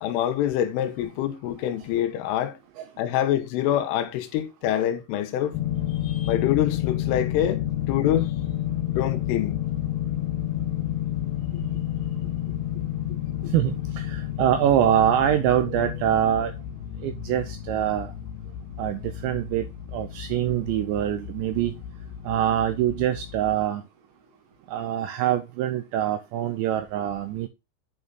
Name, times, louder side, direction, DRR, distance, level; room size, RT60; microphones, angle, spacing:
voice 1, 0.0-2.6 3.0-5.6 6.0-8.3 8.9-9.6, left 11 dB, 80° left, 3.3 m, -26 dB
sound 1, 5.5-23.7, left 12 dB, 65° left, 3.2 m, -31 dB
voice 2, 13.5-16.5 17.0-18.1 18.8-19.7 19.9-21.7 22.3-23.8 24.7-27.5, right 11 dB, 90° right, 2.6 m, -24 dB
8.4 x 5.5 x 3.7 m
omnidirectional pair, 5.9 m